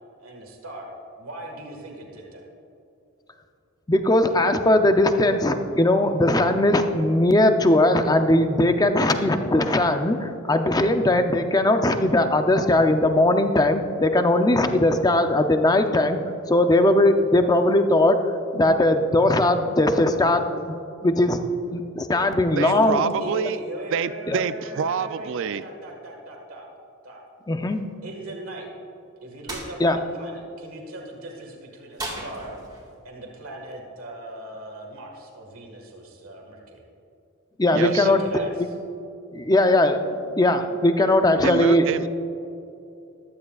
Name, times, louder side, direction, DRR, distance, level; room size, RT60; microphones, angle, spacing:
voice 1, 0.2-0.9 1.2-2.4 22.6-26.7 27.0-27.2 28.0-28.7 29.2-32.5 33.0-36.8 37.8-38.7, right 1 dB, 80° right, 1 dB, 1.7 m, -39 dB
voice 2, 3.9-20.8 21.0-21.4 21.7-23.0 24.3-24.4 27.5-27.8 29.8-30.0 37.6-38.4 39.3-42.1, left 1 dB, 20° left, 7 dB, 0.6 m, -20 dB
voice 3, 22.6-23.6 23.9-25.6 37.7-38.1 41.4-42.1, right 7 dB, 65° right, 13 dB, 0.4 m, -27 dB
sound 1, 29.5-29.7 32.0-32.9, right 1 dB, 20° right, 2.0 m, -35 dB
15.0 x 12.5 x 2.4 m, 2.7 s
head